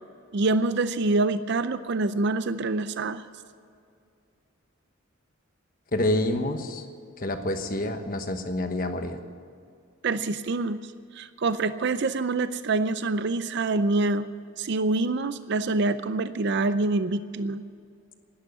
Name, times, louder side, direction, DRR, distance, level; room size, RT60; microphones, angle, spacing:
voice 1, 0.3-3.3 10.0-10.8 11.1-14.3 14.6-17.6, right 3 dB, 55° right, 12 dB, 0.5 m, -26 dB
voice 2, 5.9-6.8 7.2-9.2, left 1 dB, 40° left, 7 dB, 1.2 m, -27 dB
11.5 x 11.0 x 9.3 m, 2.4 s
head